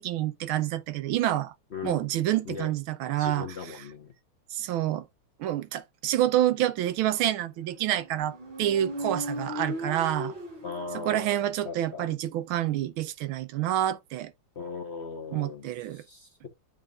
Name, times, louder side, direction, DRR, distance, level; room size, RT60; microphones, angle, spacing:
voice 1, 0.0-1.5 1.8-3.5 4.5-5.0 5.4-10.3 10.9-14.3 15.3-16.0, right 12 dB, 85° right, 1.5 m, -28 dB
voice 2, 1.7-2.7 3.2-4.1 10.6-12.1 14.5-16.5, left 5 dB, 40° left, 1.0 m, -39 dB
Motorcycle, 7.7-11.4, equal, 65° right, 3.6 m, -37 dB
11.0 x 3.7 x 2.4 m
omnidirectional pair, 2.3 m